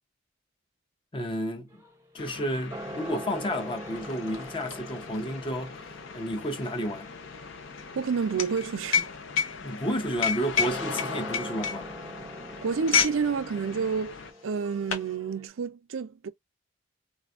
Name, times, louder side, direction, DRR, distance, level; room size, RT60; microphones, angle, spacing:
voice 1, 1.1-1.8 2.1-5.8 6.1-7.1 9.6-11.9, equal, 25° left, 0.6 m, -31 dB
sound 1, 1.7-15.5, right 1 dB, 15° right, 0.6 m, -44 dB
sound 2, 2.2-14.3, left 5 dB, 65° left, 0.6 m, -42 dB
sound 3, 2.9-3.0 3.3-13.2 13.5-13.8 14.5-15.1, left 7 dB, 90° left, 0.8 m, -30 dB
voice 2, 7.9-9.2 12.6-16.3, right 5 dB, 80° right, 0.5 m, -29 dB
4.2 x 2.3 x 2.4 m
head